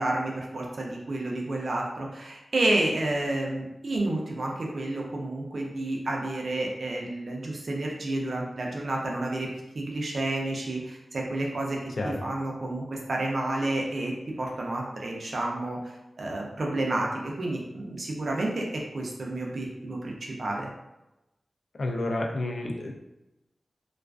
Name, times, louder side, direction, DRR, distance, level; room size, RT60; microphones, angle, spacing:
voice 1, 0.0-9.5 9.7-11.8 12.0-18.7 18.9-20.7, right 2 dB, 70° right, -1 dB, 0.5 m, -30 dB
voice 2, 21.8-22.9, left 2 dB, 70° left, 1 dB, 0.3 m, -30 dB
2.3 x 2.3 x 2.3 m, 0.95 s
wide cardioid pair, 90°, 0 cm